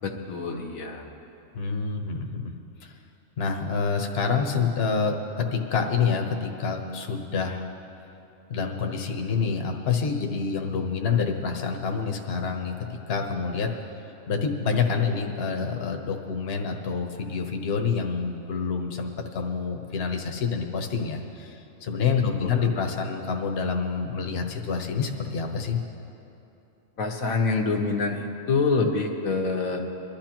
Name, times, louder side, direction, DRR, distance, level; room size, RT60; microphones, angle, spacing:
voice 1, 0.0-1.1 22.4-22.7 27.0-29.8, left 4 dB, 85° left, 1 dB, 1.5 m, -26 dB
voice 2, 1.5-2.5 2.8-2.9 3.4-7.7 8.5-13.8 14.3-25.8, left 5 dB, 50° left, 2 dB, 1.1 m, -27 dB
23.5 x 12.0 x 2.9 m, 2.8 s
omnidirectional pair, 1.4 m